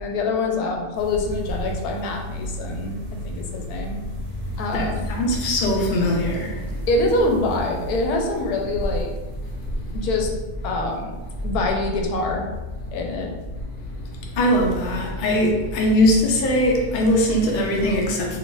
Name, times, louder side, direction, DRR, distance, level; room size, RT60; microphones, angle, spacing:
voice 1, 0.0-2.9 3.2-4.0 4.6-5.1 6.9-9.1 9.9-10.3 10.6-11.1 11.4-12.5 12.9-13.3, left 2 dB, 80° left, 1 dB, 1.1 m, -25 dB
sound 1, 0.9-16.4, equal, 80° right, 1.3 m, -34 dB
voice 2, 4.7-6.7 14.3-18.4, left 1 dB, 60° left, 0 dB, 0.5 m, -21 dB
3.0 x 2.4 x 3.8 m, 1.2 s
omnidirectional pair, 1.6 m